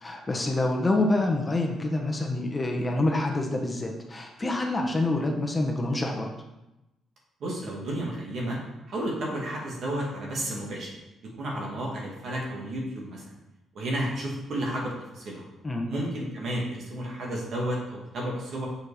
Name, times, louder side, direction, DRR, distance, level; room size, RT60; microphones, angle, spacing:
voice 1, 0.0-6.3 15.6-15.9, left 2 dB, 20° left, 1 dB, 1.1 m, -27 dB
voice 2, 7.4-8.6 8.9-10.9 11.4-13.2 13.7-15.4 15.9-18.7, right 1 dB, 65° right, -3 dB, 2.3 m, -32 dB
6.4 x 4.6 x 5.0 m, 0.95 s
cardioid pair, 90°, 0 cm